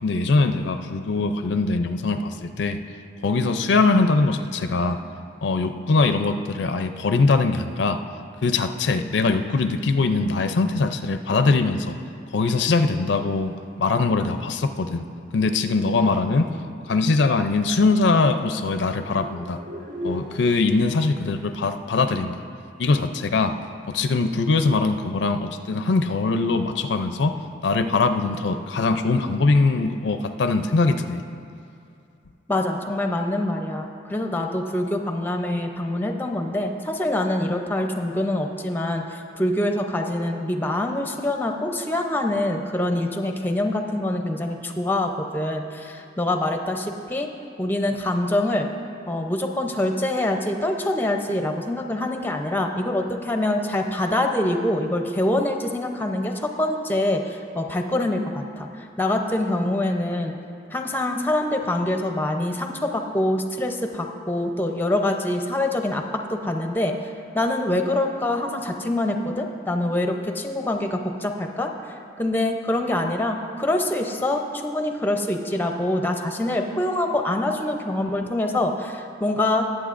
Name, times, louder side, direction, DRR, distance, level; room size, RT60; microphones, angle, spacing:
voice 1, 0.0-2.8 3.2-5.0 5.4-8.0 8.4-12.0 12.3-15.0 15.3-16.5 16.9-19.6 20.0-22.4 22.8-23.6 23.8-27.3 27.6-31.2, left 3 dB, 70° left, 8 dB, 0.5 m, -22 dB
sound 1, 18.9-20.5, left 1 dB, 75° right, 1.9 m, -37 dB
voice 2, 32.5-47.3 47.6-48.7 49.1-60.3 60.7-66.9 67.3-71.7 72.2-79.7, left 1 dB, 10° left, 3 dB, 0.6 m, -25 dB
20.0 x 7.6 x 2.5 m, 2.6 s
head